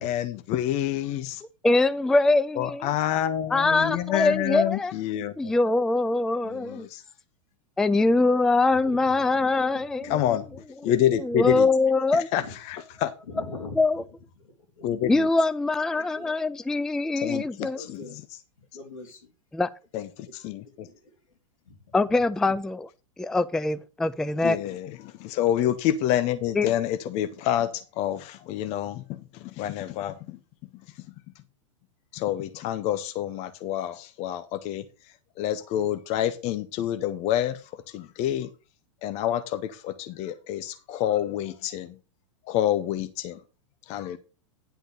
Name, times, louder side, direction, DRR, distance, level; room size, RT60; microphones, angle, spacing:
voice 1, 0.0-1.4 2.6-5.5 6.4-7.0 10.1-10.4 10.8-11.7 12.1-13.1 14.8-15.3 17.2-18.0 19.9-20.9 24.4-30.4 32.1-34.8 35.4-38.5 39.0-42.0 42.5-43.4 43.9-44.2, left 11 dB, 40° left, 0.8 m, -28 dB
voice 2, 1.6-2.9 3.5-4.9 5.4-6.9 7.8-10.2 11.2-12.3 13.8-14.0 15.1-17.8 19.5-19.7 21.9-22.9 23.2-24.6 26.6-26.7, left 3 dB, 5° left, 0.3 m, -23 dB
voice 3, 8.7-10.2 12.4-12.5 12.9-13.8 14.4-14.9 15.9-16.4 17.7-18.2 18.6-19.3 20.4-20.9, left 3 dB, 80° left, 3.0 m, -43 dB
10.0 x 3.9 x 6.8 m
hypercardioid pair, 115°, 17 cm